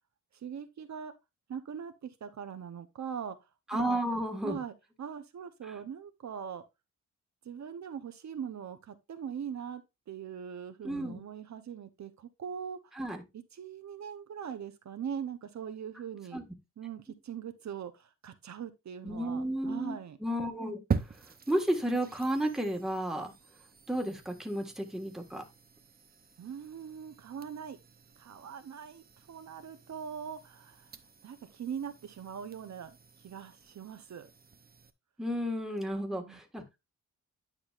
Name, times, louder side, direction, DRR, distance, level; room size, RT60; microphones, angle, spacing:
voice 1, 0.3-1.1 1.5-4.0 4.4-6.6 7.4-12.9 13.5-16.4 16.8-20.2 26.4-27.8 28.2-31.0 31.2-34.3 35.9-36.4, right 8 dB, 65° right, 0.8 m, -41 dB
voice 2, 3.7-4.6 5.6-5.7 10.8-11.2 12.9-13.2 16.3-16.4 19.0-23.3 23.9-25.4 35.2-36.8, right 1 dB, ahead, 1.6 m, -33 dB
sound 1, 20.9-34.9, right 5 dB, 30° right, 0.7 m, -43 dB
9.8 x 5.9 x 2.4 m
wide cardioid pair, 105°, 30 cm